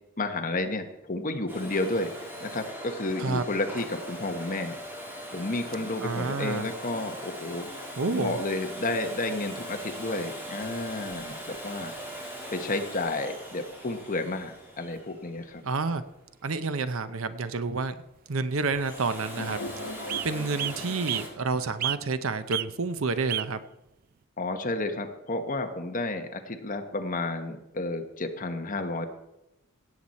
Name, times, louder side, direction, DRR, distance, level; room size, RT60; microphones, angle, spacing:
voice 1, 0.2-2.1 2.4-4.8 5.3-11.9 12.5-15.6 24.4-29.1, left 2 dB, 40° left, 5 dB, 1.2 m, -31 dB
Domestic sounds home sounds, 1.5-16.2 18.6-21.3, equal, 10° right, 2.7 m, -41 dB
voice 2, 6.0-6.7 8.0-8.4 15.6-16.0 16.4-17.9 18.3-19.6 20.2-23.6, right 4 dB, 70° right, 12 dB, 0.7 m, -29 dB
sound 1, 10.6-11.6 12.7-12.8 13.1-13.2 13.8-14.1 14.4-14.5 14.8-15.0 15.4-15.6 16.5-16.6 17.0-17.1 18.2-18.3 18.6-19.0 19.5-19.6 20.1-20.3 20.6-21.3 21.8-22.2 22.5-22.7 23.3-23.5 24.2-24.3, right 12 dB, 45° right, 0.3 m, -33 dB
sound 2, 19.4-22.2, left 1 dB, 80° left, 1.3 m, -40 dB
17.0 x 8.0 x 4.3 m, 0.90 s
head